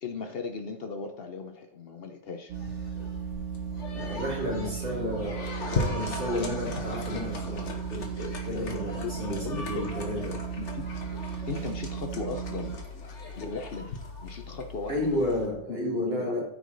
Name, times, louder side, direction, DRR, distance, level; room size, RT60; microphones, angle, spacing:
voice 1, 0.0-2.5 8.5-9.9 10.3-10.9 11.2-12.7 13.4-15.2 15.7-16.3, left 4 dB, 55° left, 6 dB, 1.0 m, -37 dB
sound 1, 2.5-15.5, left 3 dB, 80° left, 1.6 m, -38 dB
sound 2, 2.5-12.8, right 9 dB, 75° right, 1.1 m, -36 dB
voice 2, 3.9-10.4 14.9-16.4, left 1 dB, 55° right, -4 dB, 3.0 m, -32 dB
13.0 x 4.8 x 4.0 m, 0.74 s
omnidirectional pair, 1.2 m